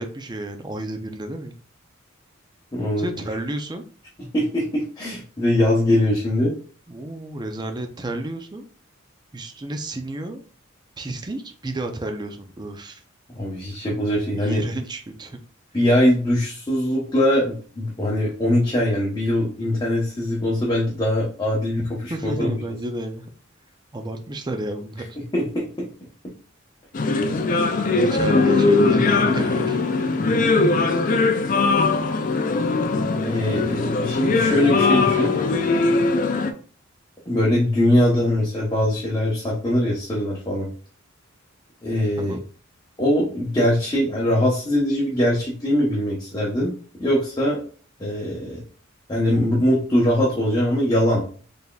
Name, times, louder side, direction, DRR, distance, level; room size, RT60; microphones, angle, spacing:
voice 1, 0.0-1.5 3.0-3.8 6.9-8.7 9.3-10.4 11.0-13.0 14.4-15.4 22.1-23.3 23.9-25.2 27.3-29.8 42.2-42.4, right 1 dB, 20° right, 6 dB, 0.5 m, -31 dB
voice 2, 2.7-3.2 4.3-6.5 13.3-14.6 15.7-22.6 25.3-25.9 33.2-35.3 37.3-40.7 41.8-42.4 43.0-46.7 47.0-47.6 48.0-48.6 49.1-51.2, left 1 dB, 20° left, -5 dB, 0.9 m, -22 dB
sound 1, 26.9-36.5, left 3 dB, 40° left, 0.4 m, -20 dB
4.1 x 3.4 x 2.3 m, 0.42 s
head